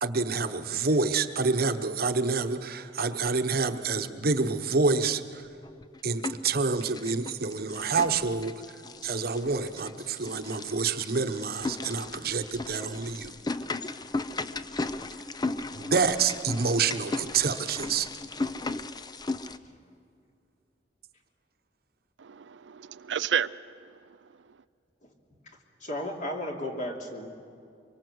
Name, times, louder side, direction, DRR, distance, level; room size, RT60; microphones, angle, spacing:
voice 1, 0.0-5.4 6.0-8.5 9.0-13.3 15.7-18.1, right 4 dB, 55° right, 8 dB, 1.0 m, -27 dB
sound 1, 5.6-6.5 6.8-19.6, left 3 dB, 25° left, 0.6 m, -36 dB
voice 2, 22.2-24.6, right 8 dB, 85° right, 15 dB, 0.5 m, -33 dB
voice 3, 25.8-27.3, left 1 dB, 45° left, 1 dB, 3.0 m, -34 dB
24.5 x 23.5 x 8.0 m, 2.4 s
head